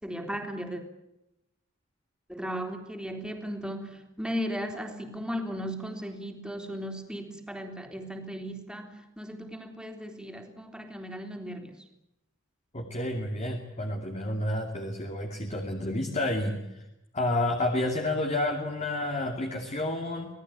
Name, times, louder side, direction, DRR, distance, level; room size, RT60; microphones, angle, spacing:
voice 1, 0.0-0.8 2.3-11.8, equal, 5° right, 4 dB, 3.5 m, -36 dB
voice 2, 12.7-16.8 17.1-20.3, left 1 dB, 35° left, 3 dB, 2.7 m, -30 dB
26.0 x 18.5 x 9.6 m, 0.89 s
head